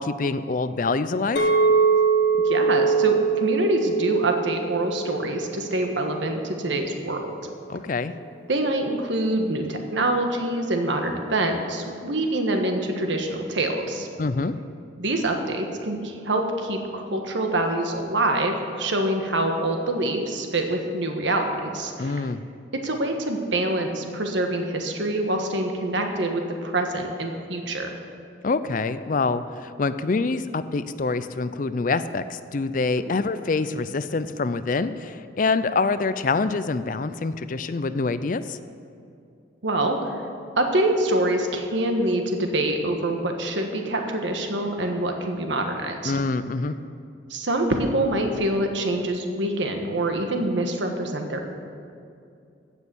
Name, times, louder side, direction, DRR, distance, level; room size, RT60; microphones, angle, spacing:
voice 1, 0.0-1.5 7.7-8.1 14.2-14.5 22.0-22.4 28.4-38.6 46.0-46.8, left 3 dB, 45° left, 13 dB, 0.4 m, -26 dB
Chink clink, 1.4-5.7 6.2-6.5, right 5 dB, 65° left, 1.2 m, -22 dB
voice 2, 2.4-7.2 8.5-14.1 15.0-22.2 22.8-27.9 39.6-40.0 40.6-46.1 47.3-51.4, right 1 dB, 75° right, 4 dB, 1.4 m, -25 dB
16.0 x 6.4 x 7.0 m, 2.5 s
head